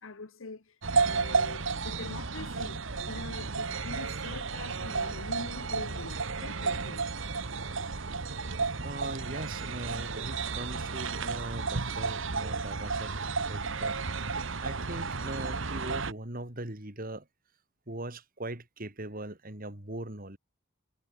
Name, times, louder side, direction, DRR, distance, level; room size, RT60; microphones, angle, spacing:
voice 1, 0.0-7.1 8.9-9.0, left 3 dB, 70° left, 1.1 m, -44 dB
sound 1, 0.8-16.1, right 4 dB, 60° right, 1.3 m, -32 dB
voice 2, 7.9-8.3 8.8-14.0 14.2-17.3 17.9-20.4, right 1 dB, 40° right, 3.4 m, -40 dB
head